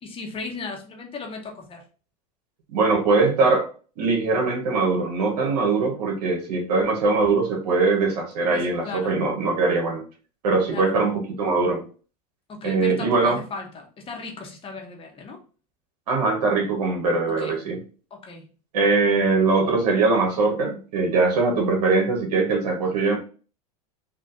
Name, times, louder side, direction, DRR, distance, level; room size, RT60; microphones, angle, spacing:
voice 1, 0.0-1.8 8.5-9.1 10.7-10.9 12.5-15.4 17.4-17.6 18.1-18.5 22.8-22.9, left 4 dB, 25° left, 2 dB, 0.9 m, -36 dB
voice 2, 2.7-3.7 4.0-10.0 10.4-11.8 12.6-13.4 16.1-17.8 18.7-23.2, right 3 dB, 75° right, 1 dB, 1.2 m, -21 dB
3.7 x 2.4 x 2.5 m, 0.38 s
hypercardioid pair, 105°, 21 cm